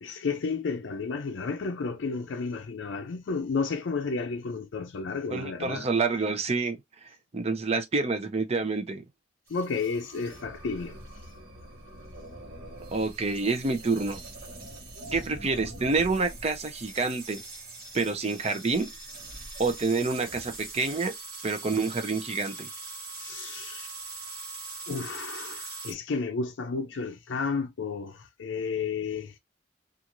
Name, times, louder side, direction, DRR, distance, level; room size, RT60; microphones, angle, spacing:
voice 1, 0.0-5.9 9.5-10.9 23.2-23.9 24.9-29.3, left 4 dB, 75° left, 0.5 m, -32 dB
voice 2, 5.3-6.8 7.3-9.0 12.9-14.2 15.1-17.4 17.9-18.9 19.6-21.1 21.4-22.7, right 3 dB, 35° right, 0.6 m, -28 dB
sound 1, 9.5-25.9, right 2 dB, 55° right, 1.2 m, -42 dB
2.6 x 2.4 x 2.9 m
head